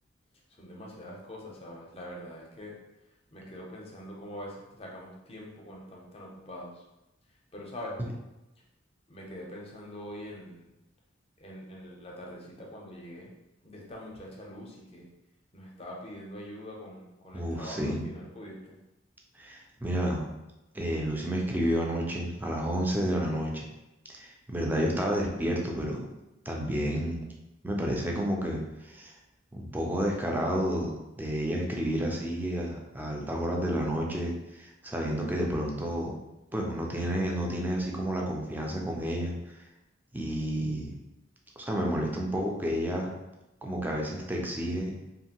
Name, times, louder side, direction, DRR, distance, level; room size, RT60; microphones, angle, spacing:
voice 1, 0.6-2.8 3.3-6.8 7.5-8.2 9.1-10.7 11.4-13.3 13.6-15.1 15.5-17.8 18.0-18.7, equal, 30° left, -2 dB, 0.6 m, -43 dB
voice 2, 17.3-18.0 19.4-20.3 20.7-23.7 24.1-26.1 26.5-27.2 27.6-29.1 29.5-36.2 36.5-39.6 40.1-41.0 41.6-43.1 43.6-44.9, equal, 10° right, -1 dB, 0.4 m, -30 dB
2.7 x 2.5 x 2.9 m, 0.96 s
head